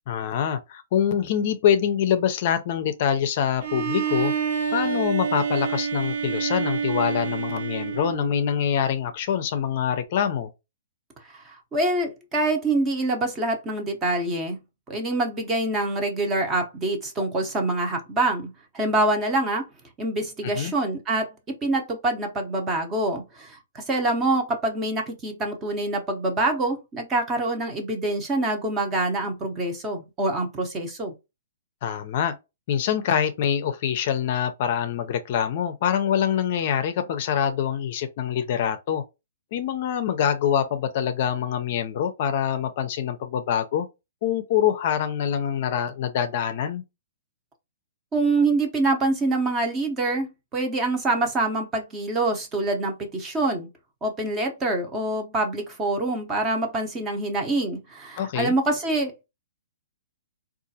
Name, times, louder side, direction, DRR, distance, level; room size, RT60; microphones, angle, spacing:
voice 1, 0.1-4.3 4.7-10.5 20.4-20.7 31.8-32.4 32.7-39.0 39.5-43.9 44.2-46.8 58.2-58.5, left 9 dB, 45° left, 0.5 m, -25 dB
Bowed string instrument, 3.6-8.6, right 7 dB, 55° right, 0.7 m, -28 dB
voice 2, 11.3-14.6 14.9-19.7 20.0-31.1 48.1-53.7 54.0-59.3, right 2 dB, 15° right, 0.7 m, -25 dB
3.7 x 2.4 x 2.7 m
hypercardioid pair, 155°, 0 cm